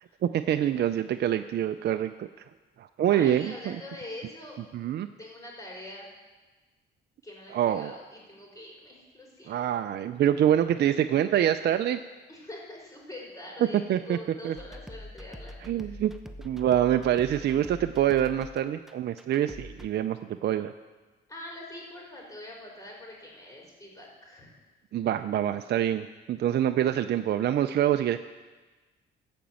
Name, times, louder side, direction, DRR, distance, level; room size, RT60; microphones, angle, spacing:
voice 1, 0.2-2.3 2.8-3.8 4.7-5.1 7.5-8.0 9.5-12.0 13.9-14.2 14.4-14.5 15.7-16.1 16.4-20.7 24.9-28.2, right 11 dB, 55° right, 9 dB, 0.5 m, -26 dB
voice 2, 3.1-4.6 5.2-6.1 7.2-9.5 12.3-16.0 21.3-24.5, left 1 dB, 15° left, -2 dB, 4.4 m, -44 dB
sound 1, 14.6-19.9, left 1 dB, ahead, 0.8 m, -44 dB
15.5 x 5.2 x 7.6 m, 1.3 s
cardioid pair, 90°, 20 cm